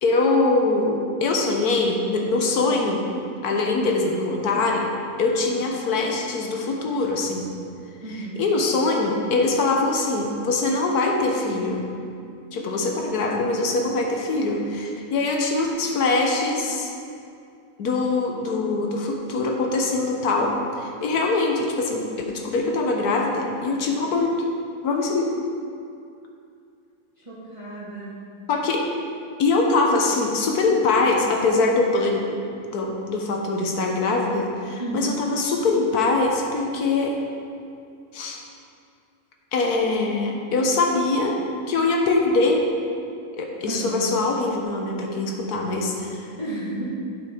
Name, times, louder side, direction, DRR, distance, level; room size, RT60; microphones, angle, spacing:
voice 1, 0.0-3.1 3.4-4.9 5.2-7.5 8.1-11.8 12.5-16.9 17.8-24.5 24.8-25.4 28.5-28.9 29.4-32.4 32.7-37.3 38.1-38.4 39.5-41.4 41.7-42.7 43.3-46.3, left 3 dB, 70° left, 1 dB, 1.4 m, -23 dB
voice 2, 8.0-8.4 12.5-12.8 27.3-28.2 34.8-35.1 43.6-44.1 46.4-46.9, right 2 dB, 20° right, -8 dB, 1.6 m, -32 dB
8.5 x 6.7 x 4.9 m, 2.5 s
omnidirectional pair, 1.7 m